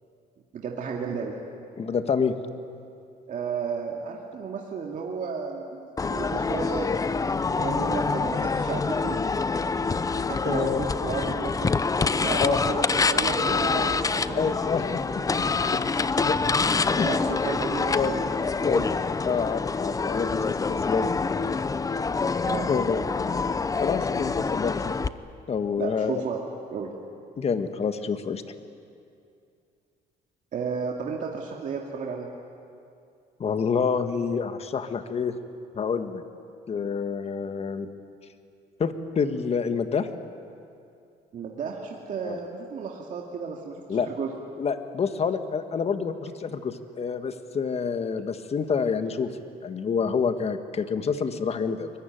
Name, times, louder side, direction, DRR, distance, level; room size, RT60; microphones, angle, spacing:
voice 1, 0.5-1.4 3.3-6.9 7.5-9.2 10.3-11.7 12.0-14.5 16.9-18.2 18.6-18.9 22.4-22.7 25.8-26.4 26.7-26.9 30.5-32.3 41.3-44.3, right 5 dB, 50° right, -1 dB, 2.4 m, -33 dB
voice 2, 1.8-2.3 10.4-10.8 12.4-12.6 14.3-15.2 15.7-16.4 17.0-17.1 17.9-18.2 18.6-18.9 19.2-21.2 22.7-23.0 23.8-24.9 25.5-26.1 27.4-28.4 33.4-35.4 35.7-36.2 36.7-37.9 38.8-40.1 42.2-42.4 43.9-44.1 44.6-51.9, left 6 dB, 35° left, 9 dB, 1.6 m, -27 dB
sound 1, 6.0-25.1, left 4 dB, 20° left, 0.7 m, -26 dB
24.0 x 22.0 x 9.4 m, 2.5 s
cardioid pair, 110°, 17 cm